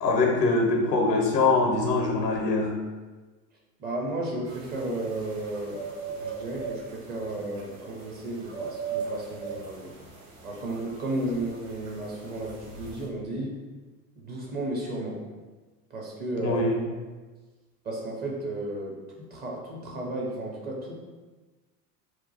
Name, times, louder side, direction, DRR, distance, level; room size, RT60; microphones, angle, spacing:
voice 1, 0.0-2.7 16.4-16.8, left 3 dB, 80° left, 2 dB, 0.7 m, -23 dB
voice 2, 3.8-5.8 6.2-9.9 10.4-13.6 14.2-15.2 15.9-16.6 17.8-20.9, right 1 dB, 20° right, -2 dB, 0.5 m, -33 dB
sound 1, 4.5-13.1, right 5 dB, 50° right, 1.0 m, -39 dB
2.9 x 2.3 x 3.9 m, 1.3 s
figure-of-eight pair, 75°, 49 cm